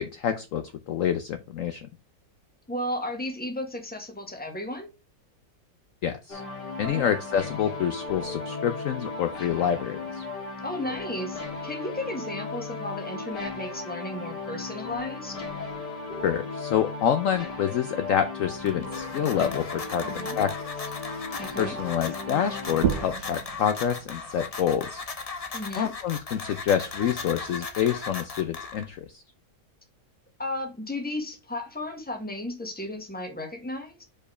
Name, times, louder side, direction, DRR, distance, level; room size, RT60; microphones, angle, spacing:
voice 1, 0.0-1.9 6.0-6.4 6.8-10.2 16.2-20.6 21.6-25.0 25.8-29.1, left 9 dB, 65° left, 0.9 m, -27 dB
voice 2, 2.7-4.9 6.9-7.1 10.6-15.4 20.0-20.4 21.4-21.8 25.5-25.9 30.4-34.0, left 1 dB, 5° left, 1.2 m, -34 dB
sound 1, 6.3-23.1, left 3 dB, 80° left, 2.3 m, -36 dB
sound 2, 18.4-29.1, left 4 dB, 35° left, 0.6 m, -38 dB
sound 3, 22.7-27.9, right 9 dB, 70° right, 1.1 m, -35 dB
5.1 x 4.6 x 4.8 m
omnidirectional pair, 1.8 m